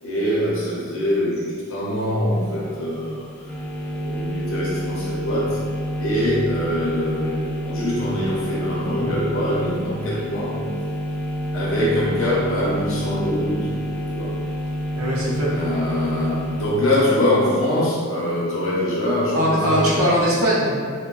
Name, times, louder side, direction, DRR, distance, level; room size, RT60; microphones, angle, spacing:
voice 1, 0.0-3.5 3.8-5.6 6.0-10.6 11.5-13.7 14.1-14.3 15.5-19.9, left 1 dB, 70° left, -6 dB, 0.6 m, -23 dB
sound 1, 2.3-16.7, equal, 5° left, 0.3 m, -28 dB
voice 2, 14.9-15.5 19.3-20.9, equal, 90° right, -6 dB, 0.7 m, -20 dB
3.0 x 2.1 x 2.3 m, 2.1 s
head